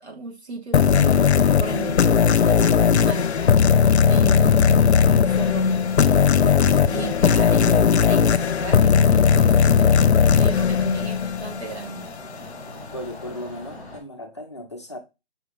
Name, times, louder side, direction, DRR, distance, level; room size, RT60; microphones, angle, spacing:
voice 1, 0.0-6.5 6.9-12.1, right 3 dB, 80° right, 2.0 m, -34 dB
sound 1, 0.7-11.9, left 7 dB, 80° left, 0.6 m, -17 dB
sound 2, 3.1-14.0, left 2 dB, 10° right, 0.8 m, -40 dB
voice 2, 12.9-15.0, equal, 25° left, 0.5 m, -36 dB
5.7 x 3.4 x 2.3 m
hypercardioid pair, 175°, 32 cm